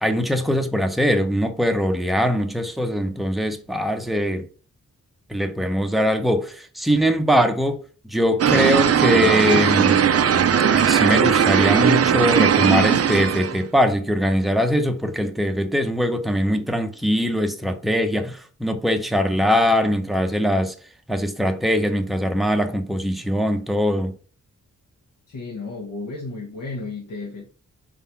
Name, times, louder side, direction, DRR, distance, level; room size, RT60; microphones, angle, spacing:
voice 1, 0.0-4.5 5.3-7.8 8.0-10.0 10.7-20.7 21.1-24.1, equal, ahead, 0.6 m, -21 dB
sound 1, 8.4-13.6, right 8 dB, 50° right, 0.4 m, -18 dB
voice 2, 25.3-27.5, left 3 dB, 65° left, 1.1 m, -33 dB
4.6 x 3.7 x 5.6 m
wide cardioid pair, 150°, 33 cm